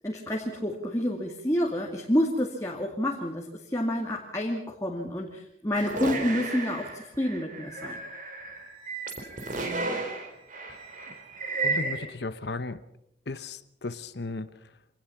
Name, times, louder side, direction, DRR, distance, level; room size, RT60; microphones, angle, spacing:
voice 1, 0.0-8.0, left 1 dB, 15° left, -1 dB, 2.3 m, -29 dB
sound 1, 5.8-12.1, right 3 dB, 45° right, 4.3 m, -33 dB
voice 2, 11.6-12.8 13.3-14.7, left 3 dB, 65° left, 13 dB, 0.9 m, -36 dB
26.0 x 19.0 x 5.9 m, 0.77 s
head